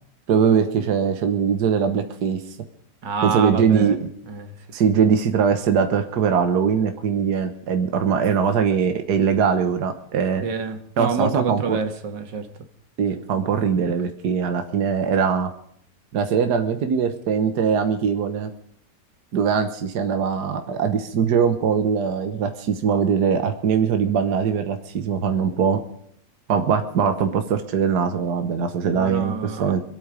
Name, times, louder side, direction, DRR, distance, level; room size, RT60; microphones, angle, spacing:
voice 1, 0.3-2.4 3.2-4.0 4.7-10.4 11.0-11.8 13.0-15.5 16.1-18.5 19.3-25.8 26.5-29.8, right 6 dB, 70° right, 8 dB, 1.7 m, -21 dB
voice 2, 3.0-4.0 4.3-4.8 10.4-12.5 28.9-29.7, right 5 dB, 90° right, 8 dB, 2.2 m, -28 dB
26.5 x 9.0 x 5.1 m, 0.68 s
omnidirectional pair, 1.8 m